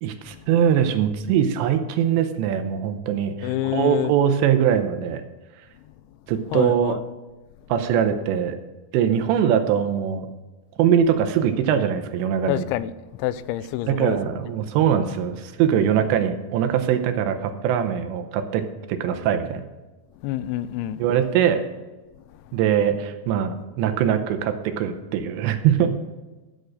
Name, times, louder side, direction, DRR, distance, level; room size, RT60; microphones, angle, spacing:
voice 1, 0.0-5.2 6.3-7.0 7.7-8.6 8.9-10.3 10.8-12.7 13.9-18.6 18.9-19.6 21.0-21.6 22.5-25.9, right 9 dB, 85° right, 2.9 m, -22 dB
voice 2, 3.4-4.1 6.5-7.0 12.5-12.9 13.2-14.2 20.2-21.0, left 14 dB, 85° left, 2.9 m, -27 dB
13.0 x 6.3 x 6.4 m
omnidirectional pair, 5.2 m